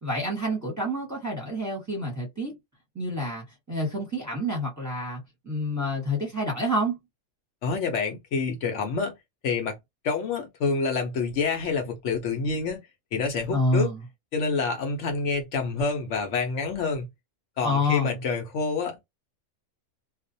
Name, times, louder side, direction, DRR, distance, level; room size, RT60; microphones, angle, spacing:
voice 1, 0.0-2.6 2.9-7.0 13.5-14.0 17.6-18.2, equal, 15° right, 0.8 m, -28 dB
voice 2, 7.6-9.1 9.4-9.8 10.0-12.8 13.1-13.9 14.3-17.1 17.6-19.1, left 4 dB, 65° left, 0.9 m, -27 dB
2.4 x 2.1 x 2.6 m
omnidirectional pair, 1.4 m